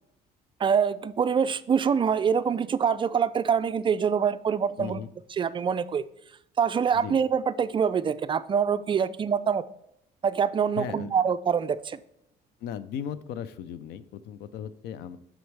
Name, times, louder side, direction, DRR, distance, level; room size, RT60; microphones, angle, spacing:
voice 1, 0.6-5.0 5.4-6.0 6.6-9.6 10.2-12.0, right 7 dB, 30° right, 14 dB, 0.3 m, -25 dB
voice 2, 4.8-5.1 6.9-7.2 10.8-11.1 12.6-15.2, left 8 dB, 80° left, 15 dB, 0.5 m, -37 dB
7.8 x 6.2 x 3.4 m, 0.78 s
cardioid pair, 110°, 17 cm